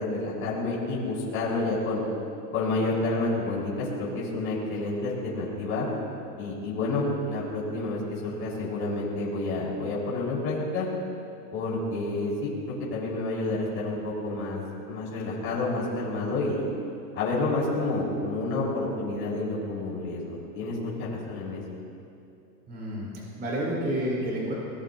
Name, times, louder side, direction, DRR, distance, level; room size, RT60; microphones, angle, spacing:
voice 1, 0.0-2.0 2.5-5.9 6.4-10.9 11.5-12.5 12.9-14.6 14.9-16.6 17.1-21.6, left 2 dB, 25° left, -7 dB, 5.1 m, -29 dB
voice 2, 22.7-24.5, right 1 dB, 20° right, -5 dB, 4.6 m, -30 dB
23.5 x 19.5 x 2.9 m, 2.6 s
hypercardioid pair, 145°, 50 cm